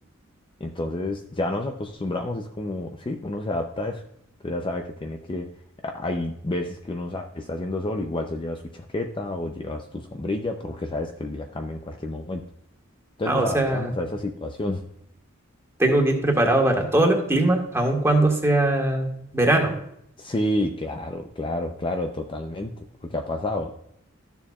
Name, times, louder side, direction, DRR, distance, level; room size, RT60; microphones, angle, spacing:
voice 1, 0.6-4.0 4.4-5.5 5.8-12.4 13.2-14.8 20.2-23.7, left 1 dB, 25° left, 4 dB, 0.5 m, -30 dB
voice 2, 13.3-13.9 15.8-19.1 19.3-19.7, right 1 dB, 15° right, 1 dB, 1.6 m, -20 dB
12.5 x 7.0 x 2.3 m, 0.73 s
head